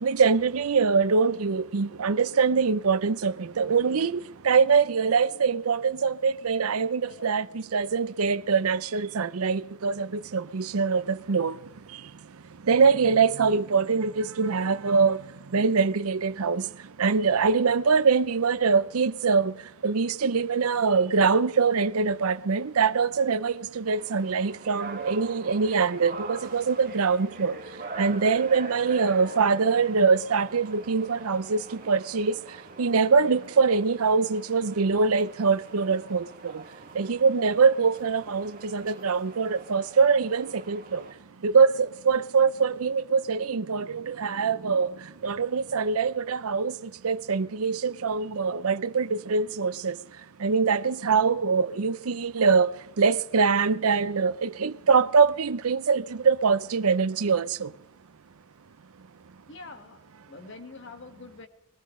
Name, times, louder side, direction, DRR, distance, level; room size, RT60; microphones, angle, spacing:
voice 1, 0.0-11.6 12.7-15.2 15.5-16.7 17.0-19.6 19.8-27.6 28.0-32.4 32.8-36.6 36.9-41.0 41.4-44.9 45.2-50.0 50.4-52.7 53.0-57.7, right 5 dB, 80° right, 0.6 m, -23 dB
sound 1, 23.8-41.1, right 3 dB, 40° right, 2.2 m, -43 dB
voice 2, 59.5-61.5, left 3 dB, 55° left, 1.8 m, -45 dB
23.0 x 18.0 x 3.2 m
head